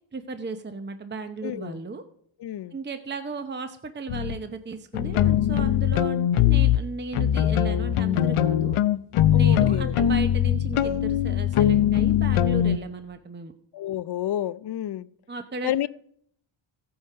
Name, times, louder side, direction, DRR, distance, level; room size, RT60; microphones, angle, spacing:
voice 1, 0.1-2.0 2.7-8.8 9.3-13.5 15.3-15.9, right 3 dB, 20° right, 0.8 m, -35 dB
voice 2, 1.4-1.8 2.4-2.8 9.3-9.9 13.7-15.1 15.6-15.9, left 12 dB, 55° left, 0.5 m, -30 dB
sound 1, 4.1-4.4 4.9-6.8 7.1-12.8, left 10 dB, 90° left, 0.8 m, -21 dB
15.0 x 8.7 x 5.5 m
wide cardioid pair, 115°, 49 cm